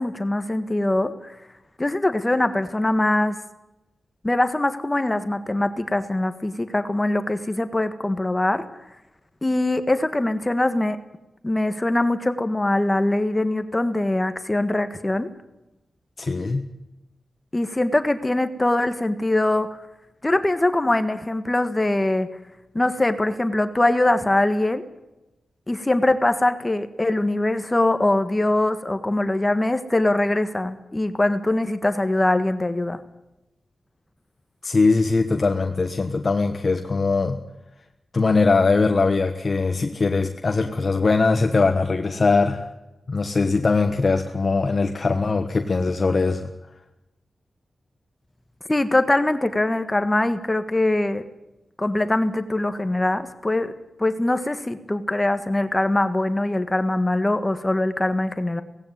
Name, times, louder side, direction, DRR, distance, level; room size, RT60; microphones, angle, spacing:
voice 1, 0.0-1.4 1.8-3.4 4.2-8.6 9.4-11.0 11.4-15.3 17.5-19.8 20.2-22.3 22.7-24.9 25.7-33.0 48.7-51.2 51.8-53.7 54.0-58.6, left 1 dB, 20° left, 10 dB, 1.5 m, -22 dB
voice 2, 16.2-16.7 34.6-37.4 38.1-42.7 43.1-46.5, left 3 dB, 45° left, 6 dB, 1.3 m, -21 dB
18.0 x 16.0 x 9.4 m, 0.97 s
cardioid pair, 75°, 0 cm